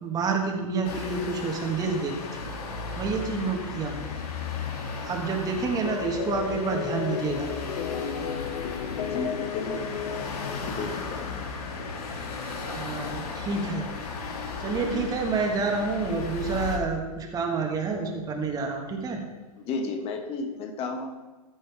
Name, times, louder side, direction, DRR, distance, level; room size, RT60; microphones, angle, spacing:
voice 1, 0.0-2.4 3.0-4.0 5.0-7.5 12.4-13.9 14.6-19.2, right 4 dB, 20° right, 2 dB, 1.6 m, -29 dB
sound 1, 0.8-16.8, left 4 dB, 80° left, 2.5 m, -35 dB
sound 2, 5.8-11.0, left 7 dB, 50° left, 1.1 m, -33 dB
voice 2, 8.9-9.9 10.5-11.2 14.9-15.1 19.6-21.1, left 3 dB, 30° left, 3 dB, 1.4 m, -33 dB
14.0 x 6.4 x 3.5 m, 1.2 s
hypercardioid pair, 115°, 20 cm